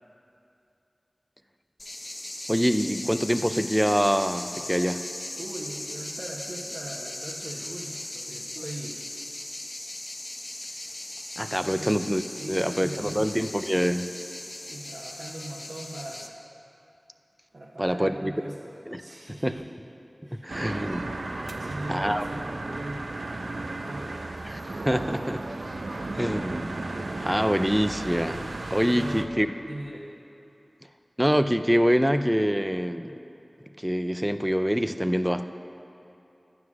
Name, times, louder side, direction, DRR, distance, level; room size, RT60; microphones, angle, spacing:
sound 1, 1.8-16.3, left 1 dB, 40° left, 1.0 m, -38 dB
voice 1, 2.5-5.0 11.4-12.2 12.5-14.1 17.8-18.5 18.9-19.0 19.3-19.5 20.4-21.1 21.9-22.3 24.5-25.4 26.1-26.9 27.2-28.4 28.7-29.5 31.2-33.2 33.8-35.4, equal, 5° right, 9 dB, 0.4 m, -25 dB
voice 2, 5.4-9.1 11.6-12.0 12.3-13.4 14.6-16.4 17.5-19.6 20.2-20.5 21.4-24.2 28.9-30.1, right 1 dB, 70° right, -5 dB, 1.1 m, -40 dB
sound 2, 20.5-29.2, right 2 dB, 90° right, 0.6 m, -34 dB
11.5 x 9.6 x 6.1 m, 2.8 s
wide cardioid pair, 60°, 0 cm